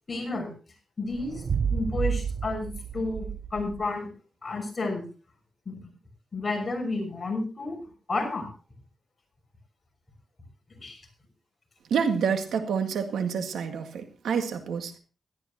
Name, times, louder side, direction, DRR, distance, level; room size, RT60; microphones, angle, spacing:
voice 1, 0.1-0.5 1.0-1.4 1.7-4.1 4.4-5.0 5.7-5.9 6.3-7.8 8.1-8.5 10.8-11.0, left 3 dB, 35° left, 3 dB, 5.9 m, -31 dB
sound 1, 1.1-3.9, right 6 dB, 55° right, 0.5 m, -31 dB
voice 2, 11.9-15.0, right 6 dB, 85° right, 6 dB, 1.9 m, -28 dB
17.0 x 14.0 x 3.0 m, 0.35 s
cardioid pair, 85°, 0 cm